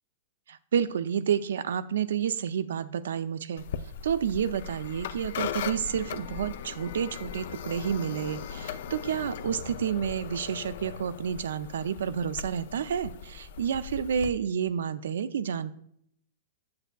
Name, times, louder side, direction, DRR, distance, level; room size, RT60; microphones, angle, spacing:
voice 1, 0.5-3.7 4.0-15.7, right 8 dB, 80° right, 14 dB, 0.4 m, -30 dB
sound 1, 3.6-14.3, left 8 dB, 65° left, 0.4 m, -39 dB
7.9 x 6.7 x 2.3 m, 0.69 s
hypercardioid pair, 135°, 0 cm